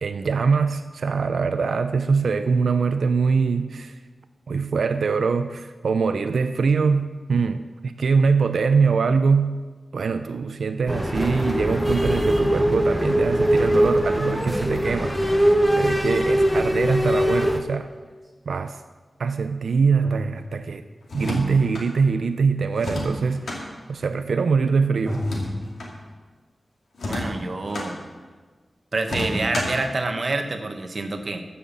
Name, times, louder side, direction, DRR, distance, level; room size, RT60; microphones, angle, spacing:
voice 1, 0.0-4.0 4.5-9.6 9.9-15.2 15.4-17.9 18.5-18.8 19.2-20.9 21.1-25.3, right 5 dB, 85° right, 9 dB, 0.4 m, -23 dB
sound 1, 10.9-17.6, equal, 5° left, 0.8 m, -21 dB
sound 2, 15.0-18.3 20.0-21.2 25.0-25.7, left 1 dB, 25° right, 1.8 m, -35 dB
sound 3, 21.0-21.9 22.8-23.6 25.1-25.9 26.9-27.9 29.0-29.9, left 1 dB, 85° left, 2.3 m, -30 dB
voice 2, 27.1-28.1 28.9-31.4, right 2 dB, 45° right, 6 dB, 1.0 m, -27 dB
13.5 x 5.6 x 7.0 m, 1.4 s
wide cardioid pair, 115°, 0 cm